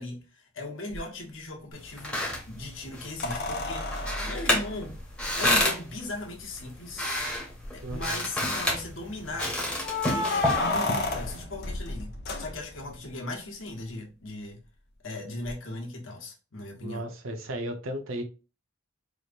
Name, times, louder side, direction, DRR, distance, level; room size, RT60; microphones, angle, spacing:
voice 1, 0.0-2.2 2.5-5.0 5.4-7.1 7.7-9.6 10.1-14.6 15.0-17.1, left 2 dB, 75° left, 1.2 m, -38 dB
sound 1, 0.9-1.0 3.2-5.6 6.6-6.7 7.0-7.1 7.6-8.1 9.8-13.0 15.5-15.6, left 3 dB, 55° left, 0.9 m, -32 dB
sound 2, 1.7-11.4, left 1 dB, 5° left, 1.4 m, -31 dB
voice 2, 7.8-8.2 16.8-18.2, right 1 dB, 85° right, 0.9 m, -35 dB
4.8 x 3.1 x 2.5 m
head